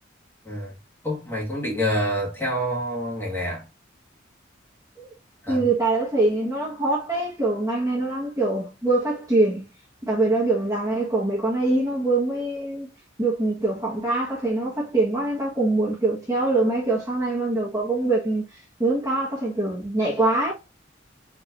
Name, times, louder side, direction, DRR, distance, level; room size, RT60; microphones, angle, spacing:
voice 1, 1.0-3.6 5.4-5.7, equal, 10° left, 2.0 m, -27 dB
voice 2, 5.5-9.6 10.0-12.9 13.2-18.4 18.8-20.5, right 2 dB, 20° right, 1.6 m, -23 dB
4.7 x 3.8 x 2.7 m
head